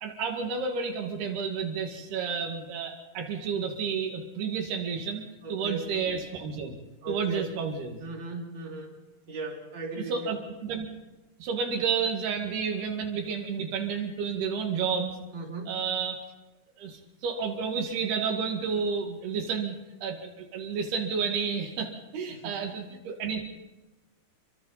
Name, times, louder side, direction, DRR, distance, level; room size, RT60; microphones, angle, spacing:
voice 1, 0.0-5.2 5.5-6.7 7.1-8.0 10.0-10.9 11.4-15.1 15.7-16.2 16.8-19.8 20.0-23.4, right 6 dB, 90° right, 2 dB, 4.2 m, -31 dB
voice 2, 5.4-5.9 7.0-7.5 8.0-8.9 9.3-10.3 15.3-15.8 22.3-22.6, right 3 dB, 30° right, -1 dB, 3.9 m, -37 dB
29.0 x 23.5 x 4.2 m, 1.1 s
omnidirectional pair, 4.4 m